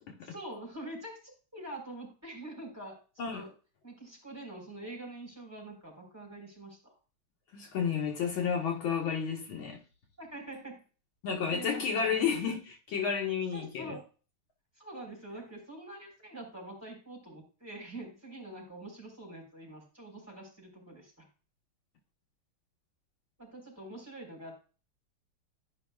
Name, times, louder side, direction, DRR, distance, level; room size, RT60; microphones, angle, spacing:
voice 1, 0.2-1.1 1.5-3.5 3.8-6.9 10.2-10.8 11.3-12.2 13.5-14.1 14.8-21.3 23.4-24.5, right 1 dB, 5° right, 3.7 m, -45 dB
voice 2, 7.5-9.8 11.2-14.0, left 6 dB, 70° left, 1.9 m, -31 dB
13.0 x 5.3 x 2.2 m
omnidirectional pair, 2.3 m